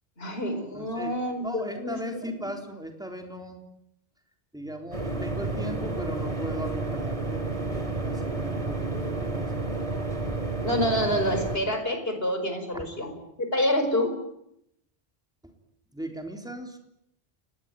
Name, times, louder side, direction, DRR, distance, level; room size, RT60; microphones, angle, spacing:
voice 1, 0.2-2.3 10.6-13.1 13.5-14.1, equal, 65° left, 6 dB, 5.2 m, -27 dB
voice 2, 0.7-1.1 1.4-3.6 4.5-9.6 12.7-13.2 15.4-15.5 15.9-16.8, equal, 5° right, 3 dB, 3.9 m, -38 dB
sound 1, 4.9-11.6, right 3 dB, 30° right, 3.3 m, -30 dB
29.5 x 19.5 x 9.3 m, 0.79 s
omnidirectional pair, 1.1 m